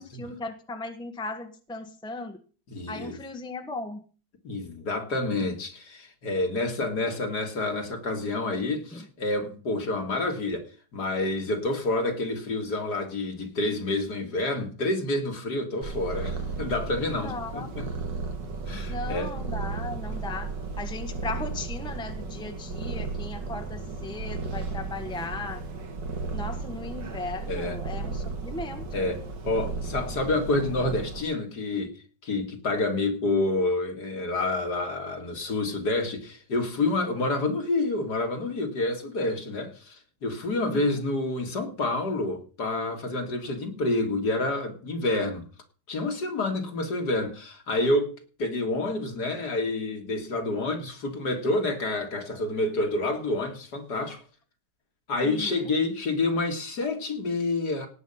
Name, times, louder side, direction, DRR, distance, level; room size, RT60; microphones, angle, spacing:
voice 1, 0.0-2.4 2.9-4.0 8.9-9.0 17.1-17.7 18.9-20.5 20.8-25.6 26.3-29.1 40.6-41.0 55.2-55.7, left 3 dB, 5° left, 1.2 m, -37 dB
voice 2, 2.7-3.2 4.4-17.9 18.7-19.3 27.5-27.8 28.9-32.0 32.2-45.4 45.9-54.2 55.1-57.9, left 2 dB, 65° left, 2.7 m, -28 dB
Purr, 15.8-31.2, right 4 dB, 80° right, 2.5 m, -34 dB
18.0 x 8.4 x 5.6 m
omnidirectional pair, 1.9 m